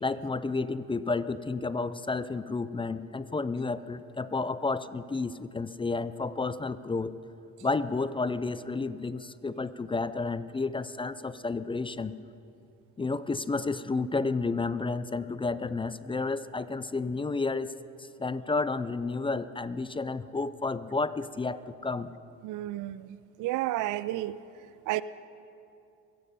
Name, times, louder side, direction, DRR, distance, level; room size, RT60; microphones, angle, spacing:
voice 1, 0.0-7.2 7.6-12.2 13.0-17.7 18.0-22.1, left 3 dB, 15° left, 15 dB, 0.4 m, -31 dB
voice 2, 22.4-24.4 24.9-25.0, right 16 dB, 70° right, 17 dB, 0.5 m, -31 dB
22.5 x 8.7 x 5.4 m, 2.6 s
supercardioid pair, 75°, 32 cm